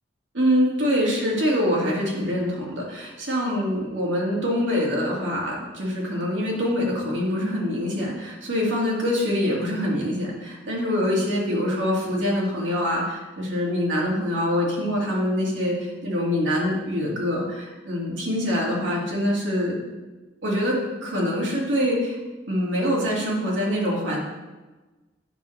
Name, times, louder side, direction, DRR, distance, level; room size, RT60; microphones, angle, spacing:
voice 1, 0.3-19.8 20.4-22.2 22.5-24.2, equal, 85° right, -3 dB, 2.2 m, -24 dB
9.2 x 3.3 x 6.3 m, 1.2 s
head